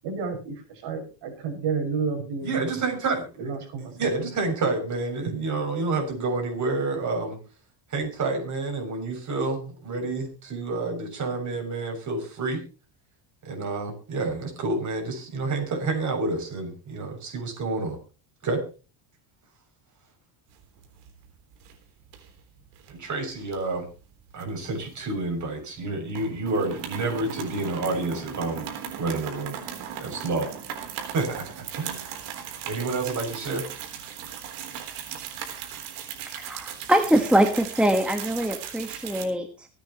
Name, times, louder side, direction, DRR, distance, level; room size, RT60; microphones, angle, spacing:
voice 1, 0.0-2.7 3.4-4.3, right 5 dB, 55° right, 4 dB, 5.9 m, -31 dB
voice 2, 2.4-3.3 3.8-7.4 7.9-12.6 13.4-18.0 18.4-18.6 22.9-23.9 24.3-28.6 29.0-29.6 30.0-30.5 31.1-32.2 32.6-33.7, right 3 dB, 35° right, 3 dB, 7.3 m, -29 dB
sound 1, 20.6-21.2 21.5-21.8 22.1-22.9 23.5-25.4 25.7-25.8 26.1-39.3, right 8 dB, 80° right, 3.8 m, -37 dB
voice 3, 36.2-39.7, right 1 dB, ahead, 4 dB, 1.5 m, -23 dB
24.5 x 9.5 x 3.1 m, 0.34 s
cardioid pair, 125°, 48 cm